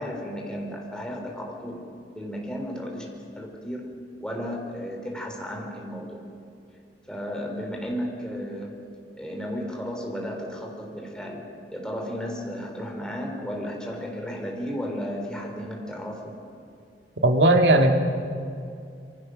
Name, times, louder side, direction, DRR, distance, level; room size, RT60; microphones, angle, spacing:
voice 1, 0.0-1.8 2.1-3.9 4.2-6.2 7.1-8.8 9.2-16.3, equal, 5° left, 0 dB, 3.8 m, -34 dB
voice 2, 17.2-17.9, right 1 dB, 75° right, 4 dB, 2.3 m, -17 dB
26.5 x 23.5 x 6.5 m, 2.5 s
head